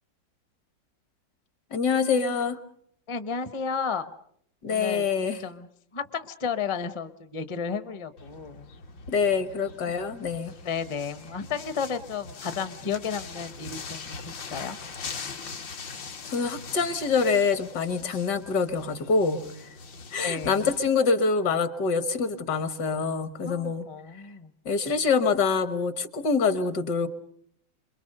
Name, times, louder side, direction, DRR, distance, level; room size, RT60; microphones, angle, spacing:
voice 1, 1.7-2.6 4.6-5.4 9.1-10.5 16.2-19.4 20.1-23.8 24.7-27.1, left 5 dB, 65° left, 12 dB, 1.8 m, -25 dB
voice 2, 3.1-4.0 4.6-5.0 5.4-8.7 10.5-14.8 20.2-20.7 23.4-24.5, left 6 dB, 25° left, 12 dB, 0.6 m, -33 dB
sound 1, 8.2-20.9, left 4 dB, 80° left, 2.4 m, -42 dB
27.0 x 22.5 x 6.6 m, 0.66 s
omnidirectional pair, 2.0 m